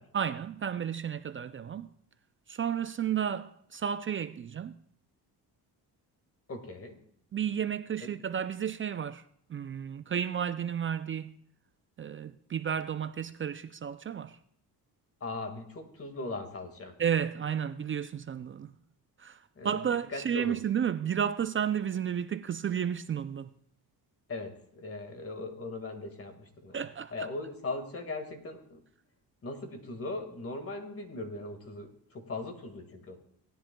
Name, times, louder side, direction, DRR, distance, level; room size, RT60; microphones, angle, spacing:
voice 1, 0.1-1.9 2.5-4.8 7.3-9.2 9.5-11.4 12.0-14.4 17.0-18.7 19.2-23.5 26.7-27.3, right 8 dB, 35° right, 0.4 m, -32 dB
voice 2, 6.5-7.0 8.0-8.1 15.2-17.0 19.6-20.6 24.3-26.8 27.1-28.8 29.4-33.2, left 2 dB, 35° left, 1.9 m, -39 dB
18.5 x 10.0 x 2.3 m
cardioid pair, 110°, 40 cm